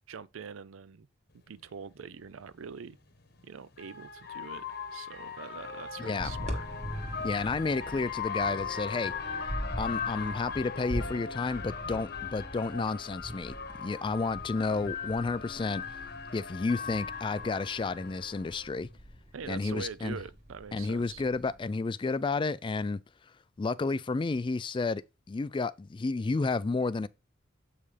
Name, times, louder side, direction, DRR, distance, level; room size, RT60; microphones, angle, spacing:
voice 1, 0.1-1.1 1.3-3.0 3.4-4.6 4.9-6.7 19.3-21.2, right 6 dB, 80° right, 0.5 m, -44 dB
sound 1, 1.6-1.7 3.1-18.7, left 6 dB, 50° left, 1.1 m, -39 dB
voice 2, 6.0-6.3 7.2-9.1 9.8-15.8 16.3-18.9 19.5-20.2 20.7-23.0 23.6-25.0 25.3-27.1, left 3 dB, 25° left, 0.3 m, -31 dB
sound 2, 6.2-21.6, equal, 35° right, 1.4 m, -42 dB
7.9 x 5.5 x 3.3 m
head